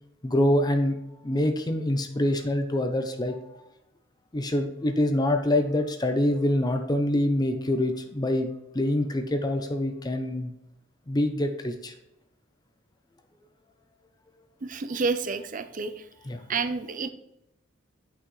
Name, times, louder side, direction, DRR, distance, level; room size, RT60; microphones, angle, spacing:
voice 1, 0.2-1.0 1.2-3.4 4.3-8.5 8.7-10.5 11.1-11.9 16.2-16.4, left 1 dB, 20° left, 6 dB, 0.6 m, -25 dB
voice 2, 14.6-15.9 16.5-17.1, right 4 dB, 45° right, 11 dB, 0.5 m, -29 dB
8.6 x 5.7 x 3.2 m, 0.88 s
head